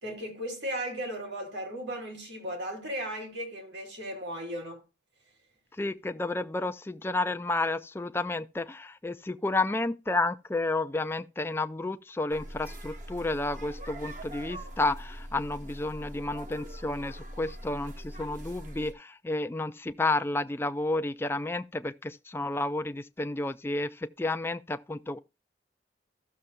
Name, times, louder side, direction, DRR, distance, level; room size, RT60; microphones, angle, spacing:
voice 1, 0.0-4.8, equal, 80° right, 2.9 m, -36 dB
voice 2, 5.8-25.2, left 2 dB, 15° left, 0.4 m, -31 dB
sound 1, 12.3-18.9, right 1 dB, 45° right, 1.0 m, -42 dB
15.5 x 6.6 x 2.3 m
head